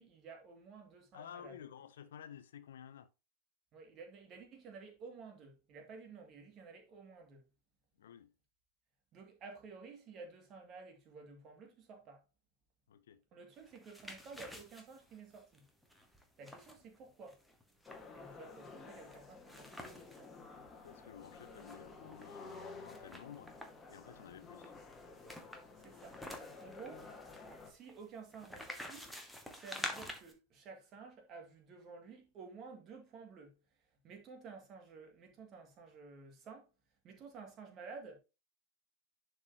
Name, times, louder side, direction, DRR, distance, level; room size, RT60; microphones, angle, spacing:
voice 1, 0.0-1.6 3.7-7.4 9.1-12.2 13.3-15.7 16.4-17.4 18.1-20.3 25.8-27.1 27.6-29.1 29.5-33.6 34.0-36.7 37.0-38.2, right 4 dB, 30° right, 2.1 m, -53 dB
voice 2, 1.1-3.1 8.0-8.3 12.9-13.2 20.8-23.5 23.9-24.7, left 9 dB, 60° left, 0.6 m, -52 dB
sound 1, 13.6-20.3 20.7-20.8 21.0-22.3 22.8-23.9 24.6-30.3, equal, ahead, 1.4 m, -49 dB
sound 2, 17.9-27.7, left 4 dB, 15° left, 1.6 m, -52 dB
10.5 x 4.7 x 2.8 m
figure-of-eight pair, 90°, 0 cm